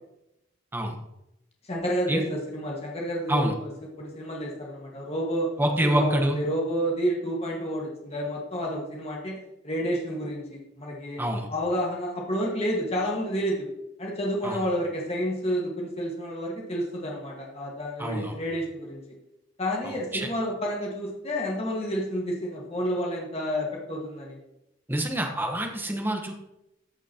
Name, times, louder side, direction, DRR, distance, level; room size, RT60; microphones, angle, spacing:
voice 1, 1.7-3.7 4.0-5.5 5.8-9.4 9.6-11.2 11.5-13.7 14.0-19.0 19.6-24.4, equal, 30° left, -2 dB, 1.6 m, -30 dB
voice 2, 5.6-6.4 11.2-11.5 14.4-14.6 18.0-18.4 19.8-20.3 24.9-26.3, right 1 dB, 10° right, 3 dB, 1.1 m, -26 dB
14.0 x 6.1 x 2.9 m, 0.86 s
head